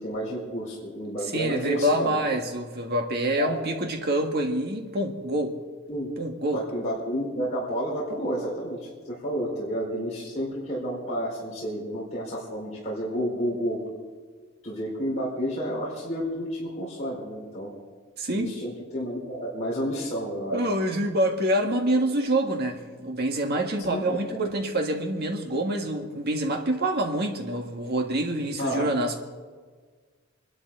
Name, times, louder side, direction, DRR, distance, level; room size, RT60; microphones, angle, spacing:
voice 1, 0.0-2.1 3.3-3.6 5.9-6.1 6.5-13.8 14.6-17.7 18.3-20.6 23.8-24.3 28.6-28.9, equal, 35° left, -6 dB, 4.5 m, -30 dB
voice 2, 1.3-5.6 6.2-6.6 18.2-18.5 20.5-29.2, right 1 dB, 50° right, 3 dB, 1.8 m, -26 dB
25.0 x 12.5 x 3.9 m, 1.5 s
head